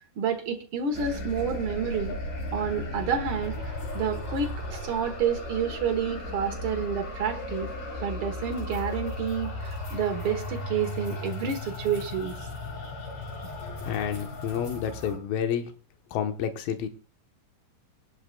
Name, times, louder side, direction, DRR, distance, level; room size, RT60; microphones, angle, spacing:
voice 1, 0.2-2.2 2.5-3.5 3.9-7.7 8.0-12.3, right 6 dB, 65° right, 5 dB, 1.3 m, -29 dB
sound 1, 0.9-15.2, left 1 dB, 50° left, 5.0 m, -36 dB
voice 2, 13.8-15.7 16.1-16.9, left 8 dB, 75° left, 7 dB, 2.8 m, -29 dB
24.5 x 11.0 x 2.3 m, 0.36 s
omnidirectional pair, 4.3 m